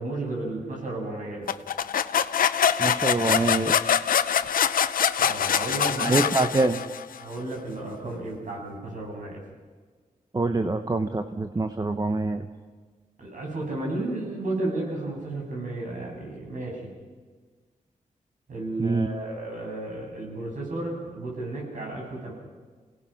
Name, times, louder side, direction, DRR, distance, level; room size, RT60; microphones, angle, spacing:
voice 1, 0.0-1.5 5.2-6.3 7.2-9.4 13.2-16.9 18.5-22.3, right 2 dB, 65° right, -1 dB, 7.3 m, -33 dB
sound 1, 1.5-7.1, left 8 dB, 85° left, 0.7 m, -24 dB
voice 2, 2.8-3.7 6.0-6.8 10.3-12.5 18.8-19.1, right 3 dB, 25° right, 8 dB, 1.0 m, -25 dB
28.0 x 18.0 x 5.9 m, 1.5 s
cardioid pair, 80°, 14 cm